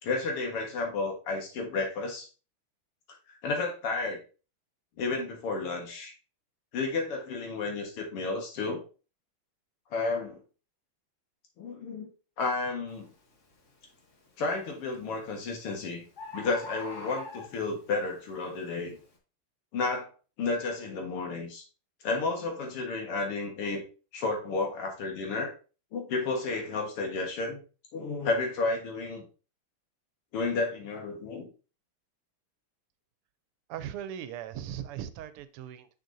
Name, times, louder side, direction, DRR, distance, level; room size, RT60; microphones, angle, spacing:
voice 1, 0.0-2.3 3.3-4.2 5.0-6.1 6.7-8.8 9.9-10.4 11.6-12.1 12.4-13.1 14.4-16.0 16.3-19.0 19.7-20.1 20.4-21.6 22.0-23.8 24.1-25.5 25.9-27.6 27.9-29.3 30.3-31.5, left 3 dB, 85° left, 1 dB, 2.5 m, -32 dB
Bird, 12.9-13.1 13.7-14.1 15.1-15.2 15.5-15.6 15.8-15.9 16.2-17.9 18.5-18.6, left 2 dB, 40° left, 1.4 m, -42 dB
voice 2, 33.7-35.9, right 10 dB, 90° right, 12 dB, 1.6 m, -38 dB
6.5 x 6.4 x 2.7 m, 0.35 s
omnidirectional pair, 2.4 m